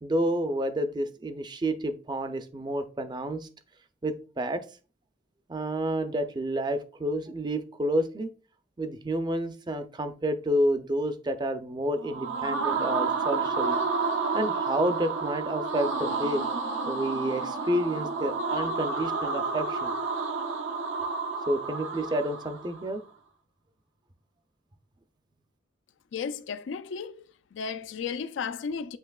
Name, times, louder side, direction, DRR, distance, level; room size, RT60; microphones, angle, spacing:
voice 1, 0.0-3.5 4.0-4.6 5.5-8.3 8.8-13.8 14.3-16.4 16.9-19.9 21.5-23.0, right 1 dB, 25° right, 0.5 m, -29 dB
sound 1, 12.0-22.8, right 4 dB, 75° right, 0.6 m, -30 dB
voice 2, 26.1-27.2 27.5-29.0, left 6 dB, 70° left, 0.3 m, -34 dB
7.9 x 2.8 x 2.3 m
head